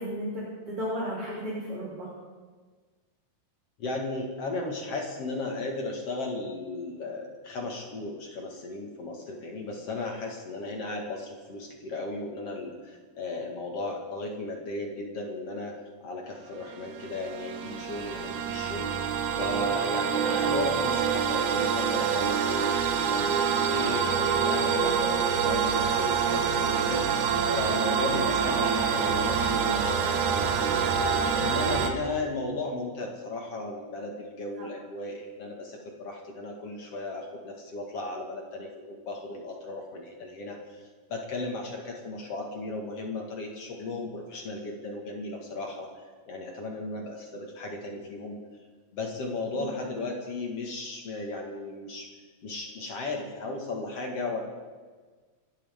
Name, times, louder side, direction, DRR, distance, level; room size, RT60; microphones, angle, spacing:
voice 1, 0.0-2.1 34.6-34.7 49.6-49.7, equal, 35° right, -5 dB, 3.6 m, -34 dB
voice 2, 3.8-18.9 19.4-27.2 27.5-30.8 31.3-45.9 46.3-48.4 48.9-52.1 52.4-54.4, left 2 dB, 50° left, 1 dB, 2.3 m, -35 dB
sound 1, 16.7-31.9, right 6 dB, 65° right, 2.3 m, -26 dB
26.0 x 13.0 x 3.6 m, 1.4 s
omnidirectional pair, 4.4 m